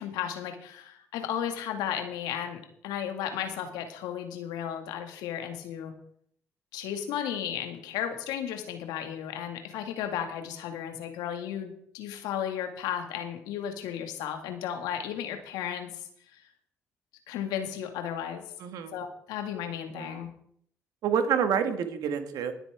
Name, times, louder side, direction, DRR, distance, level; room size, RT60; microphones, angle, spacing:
voice 1, 0.0-5.9 6.7-16.4 17.3-18.4 18.9-20.3, left 9 dB, 70° left, 5 dB, 1.9 m, -34 dB
voice 2, 18.6-19.0 19.9-20.2 21.0-22.5, right 7 dB, 65° right, 7 dB, 1.7 m, -28 dB
19.5 x 8.1 x 3.6 m, 0.67 s
hypercardioid pair, 50°, 7 cm